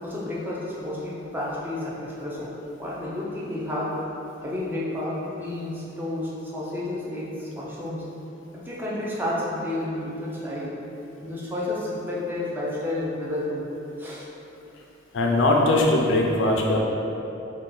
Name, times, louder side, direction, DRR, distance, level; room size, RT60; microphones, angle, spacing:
voice 1, 0.0-3.9 4.4-8.0 8.5-10.8 11.2-13.7 14.0-14.3, left 1 dB, 10° right, -7 dB, 0.4 m, -31 dB
voice 2, 15.1-16.8, left 2 dB, 85° left, -1 dB, 0.4 m, -20 dB
2.7 x 2.2 x 3.8 m, 3.0 s
head